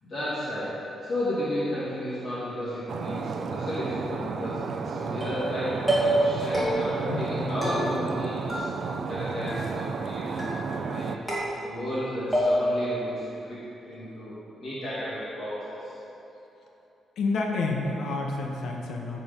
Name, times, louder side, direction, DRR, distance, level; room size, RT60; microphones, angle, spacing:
voice 1, 0.0-11.1 11.6-15.9, left 1 dB, 40° left, -10 dB, 2.4 m, -33 dB
Stream, 2.9-11.2, right 5 dB, 55° right, 0.5 m, -33 dB
sound 1, 5.2-5.5 5.9-6.3 6.5-7.1 7.6-8.2 8.5-9.2 9.5-10.0 10.4-10.9 11.3-12.0 12.3-12.9, right 1 dB, 5° left, 2.5 m, -28 dB
voice 2, 7.1-7.7 9.3-9.6 17.2-19.2, left 3 dB, 75° left, 0 dB, 1.2 m, -30 dB
13.5 x 5.3 x 5.3 m, 2.9 s
cardioid pair, 155°, 0 cm